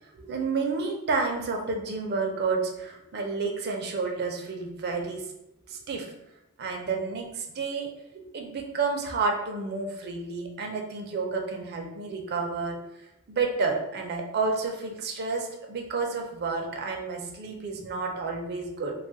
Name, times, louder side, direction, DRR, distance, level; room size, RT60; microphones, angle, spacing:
voice 1, 0.2-5.3 5.7-6.1 6.6-12.8 13.3-18.9, right 4 dB, 50° right, 2 dB, 0.5 m, -30 dB
2.3 x 2.0 x 3.9 m, 0.85 s
head